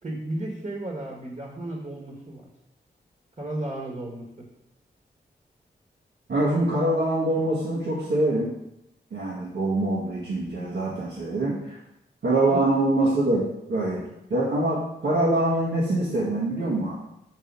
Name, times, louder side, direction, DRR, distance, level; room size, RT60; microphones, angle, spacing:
voice 1, 0.0-2.5 3.4-4.5 12.4-12.7, right 1 dB, 40° right, -2 dB, 1.8 m, -34 dB
voice 2, 6.3-8.6 9.1-11.8 12.2-14.0 14.3-17.0, right 1 dB, 75° right, -7 dB, 1.7 m, -24 dB
5.4 x 4.9 x 5.4 m, 0.85 s
cardioid pair, 45°, 19 cm